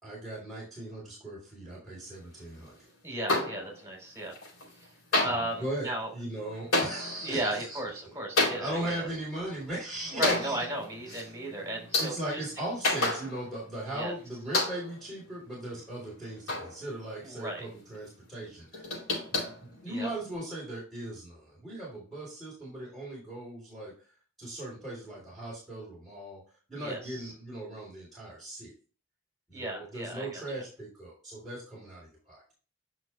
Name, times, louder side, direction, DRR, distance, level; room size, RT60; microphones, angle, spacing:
voice 1, 0.0-2.9 5.2-5.3 5.6-7.8 8.0-10.5 11.1-11.3 12.0-18.9 19.6-23.9 24.4-26.4 26.7-28.7 29.5-32.4, right 1 dB, ahead, -7 dB, 3.4 m, -38 dB
voice 2, 3.0-4.3 5.2-6.1 7.2-9.1 10.1-12.5 12.9-13.1 13.9-14.1 17.2-17.7 19.9-20.1 26.7-27.3 29.5-30.6, right 1 dB, 15° right, 0 dB, 3.3 m, -35 dB
sound 1, 3.3-4.0 4.3-4.9 5.1-13.7 14.0-14.1 14.5-15.1 15.6-17.3 17.6-17.7 17.9-18.0 18.4-20.3, left 2 dB, 85° left, 4.0 m, -32 dB
9.5 x 5.9 x 2.2 m, 0.37 s
head